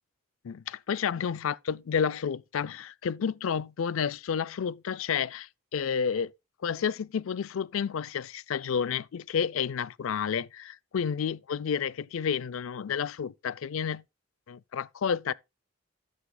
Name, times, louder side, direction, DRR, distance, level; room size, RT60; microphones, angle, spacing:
voice 1, 0.4-6.3 6.6-14.0 14.5-15.3, left 7 dB, 75° left, 0.4 m, -30 dB
11.5 x 9.8 x 2.3 m
head